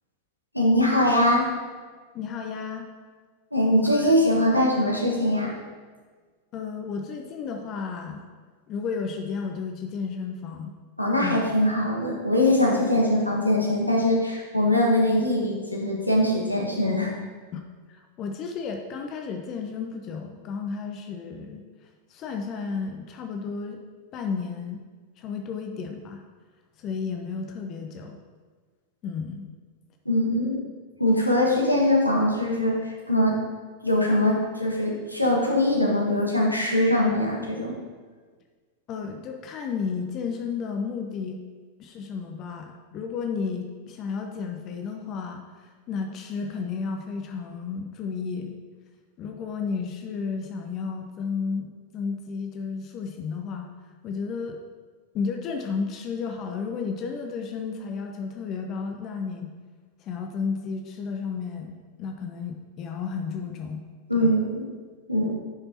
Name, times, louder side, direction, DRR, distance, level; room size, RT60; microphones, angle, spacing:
voice 1, 0.5-1.5 3.5-5.5 11.0-17.1 30.0-30.6 31.0-33.4 33.8-37.8 64.1-64.7 65.1-65.3, left 1 dB, 90° left, -2 dB, 1.2 m, -22 dB
voice 2, 2.1-2.9 3.8-4.2 6.5-8.2 8.7-10.8 11.2-11.5 11.8-11.9 17.5-17.6 17.9-21.6 22.1-23.8 24.1-24.8 25.2-26.2 26.8-28.2 29.0-29.5 38.9-41.4 41.8-48.6 49.2-51.7 51.9-53.7 54.0-54.6 55.1-59.5 60.0-63.8 64.1-64.4, left 5 dB, 35° left, 4 dB, 0.7 m, -32 dB
9.5 x 5.4 x 2.9 m, 1.5 s
figure-of-eight pair, 90°, 0 cm